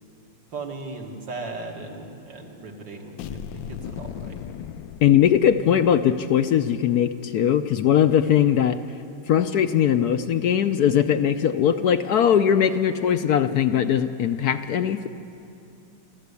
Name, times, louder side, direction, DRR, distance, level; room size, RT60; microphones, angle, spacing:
voice 1, 0.5-4.4, right 3 dB, 70° right, 1 dB, 2.7 m, -37 dB
sound 1, 3.2-6.0, left 9 dB, 90° left, 1.5 m, -37 dB
voice 2, 5.0-8.8 9.3-15.1, left 9 dB, 65° left, 9 dB, 1.0 m, -20 dB
27.0 x 13.5 x 8.3 m, 2.6 s
omnidirectional pair, 2.0 m